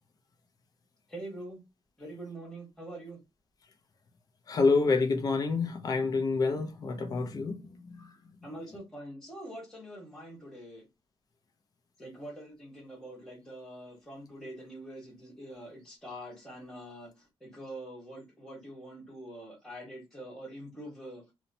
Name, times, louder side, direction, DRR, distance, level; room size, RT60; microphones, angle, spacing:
voice 1, 1.1-1.6 2.0-3.2 8.4-10.8 12.0-21.3, right 1 dB, 5° left, 1.3 m, -44 dB
voice 2, 4.5-8.1, left 4 dB, 40° left, 0.6 m, -28 dB
2.8 x 2.1 x 2.6 m
wide cardioid pair, 155°, 10 cm